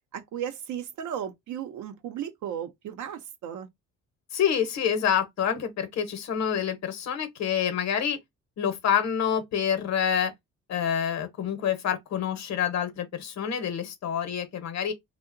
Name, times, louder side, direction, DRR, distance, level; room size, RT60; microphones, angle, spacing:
voice 1, 0.1-3.7, right 9 dB, 75° right, 0.6 m, -35 dB
voice 2, 4.3-8.2 8.6-10.3 10.7-14.9, left 8 dB, 60° left, 0.8 m, -27 dB
2.8 x 2.1 x 2.5 m
cardioid pair, 90°, 30 cm